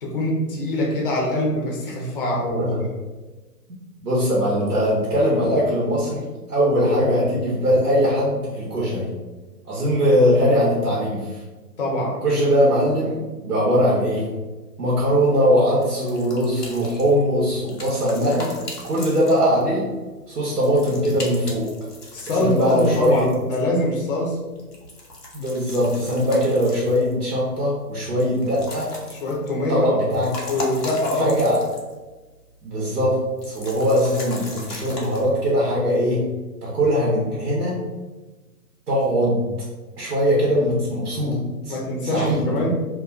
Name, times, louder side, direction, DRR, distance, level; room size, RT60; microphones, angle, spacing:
voice 1, 0.0-2.7 11.8-12.2 22.1-24.4 29.1-29.9 30.5-31.3 41.7-42.7, left 1 dB, 35° left, -3 dB, 0.5 m, -24 dB
voice 2, 4.0-9.1 9.6-11.4 12.2-14.3 14.8-18.6 18.8-19.8 20.3-21.7 22.3-23.3 25.3-28.9 29.7-30.3 31.2-31.6 32.6-33.2 33.4-36.2 36.6-37.7 38.9-39.4 40.0-41.8 42.0-42.7, equal, 75° right, -5 dB, 0.9 m, -21 dB
sound 1, 15.8-19.8 20.6-23.7 24.6-27.3 28.2-29.6 30.0-32.0 32.3-32.4 33.4-35.2, left 2 dB, 90° left, 0.9 m, -38 dB
2.4 x 2.2 x 2.3 m, 1.2 s
figure-of-eight pair, 135°, 48 cm